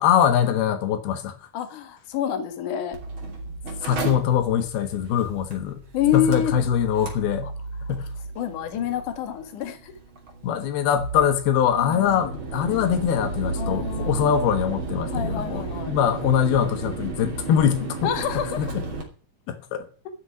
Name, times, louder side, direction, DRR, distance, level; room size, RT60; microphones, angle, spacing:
voice 1, 0.0-1.4 3.8-5.8 6.1-7.5 7.9-8.1 10.4-18.1 18.6-18.7 19.5-19.8, left 9 dB, 85° left, 3.2 m, -23 dB
voice 2, 1.5-3.0 5.9-6.5 7.4-7.5 8.4-9.9 11.2-11.3 11.8-12.3 13.5-14.3 15.1-15.9 18.0-18.7, left 9 dB, 60° left, 3.0 m, -27 dB
Mechanical fan, 2.9-19.0, right 3 dB, 35° right, 3.3 m, -33 dB
13.5 x 6.6 x 9.7 m
omnidirectional pair, 4.3 m